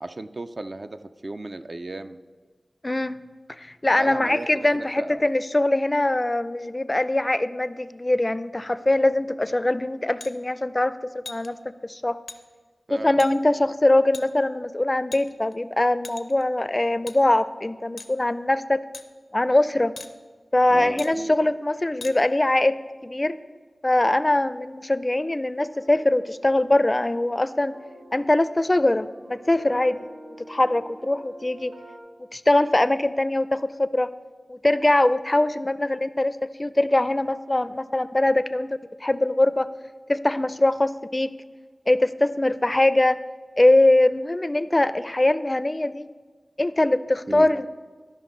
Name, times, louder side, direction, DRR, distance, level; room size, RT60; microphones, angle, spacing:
voice 1, 0.0-2.2 4.0-5.2 12.9-13.2 20.7-21.4 47.3-47.5, right 2 dB, 55° right, 8 dB, 0.4 m, -35 dB
voice 2, 2.8-3.2 3.6-11.6 11.8-12.2 12.9-18.8 19.3-19.9 20.5-23.4 23.8-27.7 28.1-30.0 30.5-31.7 32.3-34.1 34.5-38.7 39.0-39.7 40.1-41.3 41.9-43.2 43.6-46.1 46.6-47.7, left 1 dB, 35° left, 14 dB, 0.4 m, -22 dB
sound 1, 10.2-10.3 11.2-11.5 12.3-12.4 13.2-13.3 14.1-14.3 15.1-15.5 16.0-16.4 17.1-17.2 18.0-18.2 18.9-19.1 20.0-20.1 21.0-21.1 22.0-22.1, left 3 dB, 85° left, 0.5 m, -39 dB
sound 2, 25.7-32.0, right 1 dB, 90° right, 1.4 m, -48 dB
13.5 x 5.2 x 3.9 m, 1.5 s
cardioid pair, 45°, 0 cm